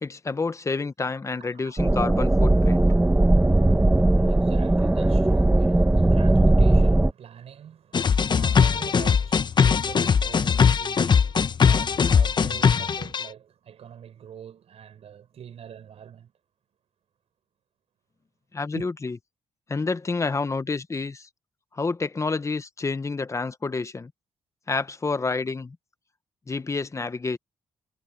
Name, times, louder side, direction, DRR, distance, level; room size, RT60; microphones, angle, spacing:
voice 1, 0.0-2.9 18.5-19.2 19.7-21.3 21.7-24.1 24.7-25.8 26.5-27.4, left 4 dB, 30° left, 1.2 m, -29 dB
voice 2, 1.4-1.9 2.8-16.3 18.7-18.9, right 9 dB, 70° right, 6.9 m, -45 dB
sound 1, 1.8-7.1, right 2 dB, 15° right, 1.0 m, -19 dB
sound 2, 7.9-13.3, left 6 dB, 45° left, 0.9 m, -20 dB
cardioid pair, 80°, 11 cm